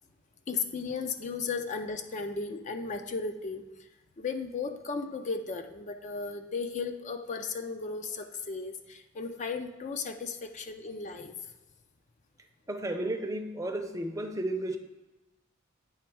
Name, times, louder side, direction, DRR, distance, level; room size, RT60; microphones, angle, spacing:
voice 1, 0.5-3.6 4.2-11.3, left 4 dB, 35° left, 7 dB, 0.4 m, -35 dB
voice 2, 12.7-14.8, right 1 dB, 15° right, 4 dB, 0.6 m, -33 dB
8.7 x 3.4 x 4.6 m, 1.1 s
head